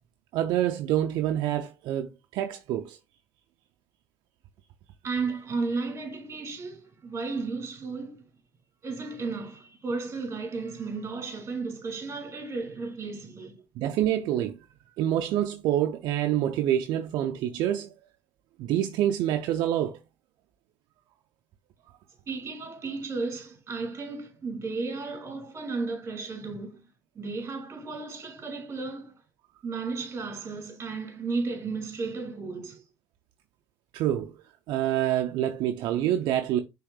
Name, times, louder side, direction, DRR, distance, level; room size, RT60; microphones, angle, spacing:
voice 1, 0.3-3.0 13.8-14.6 15.0-17.9 18.6-20.0 33.9-34.3 34.7-36.6, right 11 dB, 75° right, 0.4 m, -27 dB
voice 2, 5.0-8.3 8.8-13.6 22.3-26.8 27.1-29.2 29.6-32.8, right 4 dB, 35° right, 2.3 m, -34 dB
5.7 x 3.4 x 2.3 m
supercardioid pair, 80°, 7 cm